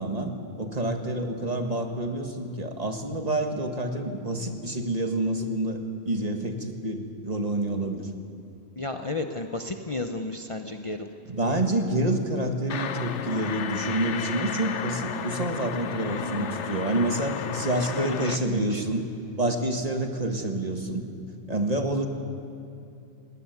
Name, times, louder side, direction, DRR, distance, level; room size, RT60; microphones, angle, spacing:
voice 1, 0.0-8.1 11.3-19.0 19.4-21.1 21.5-22.1, right 1 dB, 35° right, 4 dB, 1.8 m, -28 dB
voice 2, 8.8-11.1 16.0-16.5 18.0-18.8, left 2 dB, 30° left, 5 dB, 0.8 m, -33 dB
sound 1, 12.7-18.4, left 7 dB, 85° left, 1.2 m, -33 dB
19.5 x 17.5 x 9.5 m, 2.6 s
omnidirectional pair, 1.2 m